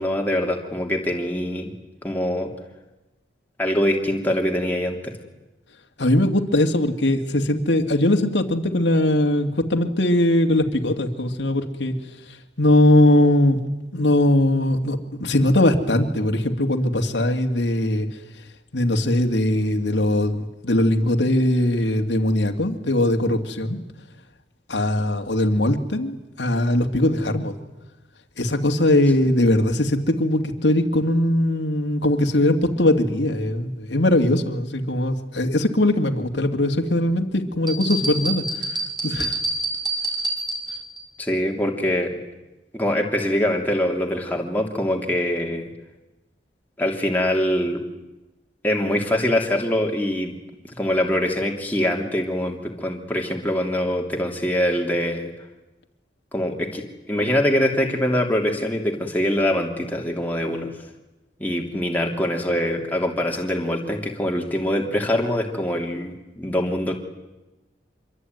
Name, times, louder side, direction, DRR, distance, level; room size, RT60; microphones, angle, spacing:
voice 1, 0.0-1.7 2.0-2.5 3.6-5.1 41.2-42.1 42.7-45.7 46.8-47.8 48.6-50.3 50.8-55.3 56.3-60.7 61.4-67.0, left 1 dB, 10° left, 0 dB, 3.1 m, -23 dB
voice 2, 6.0-11.9 12.6-13.6 13.9-18.1 18.7-23.8 24.7-27.5 28.4-38.7 39.0-39.4, left 1 dB, 80° left, 4 dB, 2.4 m, -20 dB
sound 1, 37.7-41.0, right 2 dB, 25° right, 4.3 m, -27 dB
26.0 x 23.5 x 9.5 m, 1.0 s
head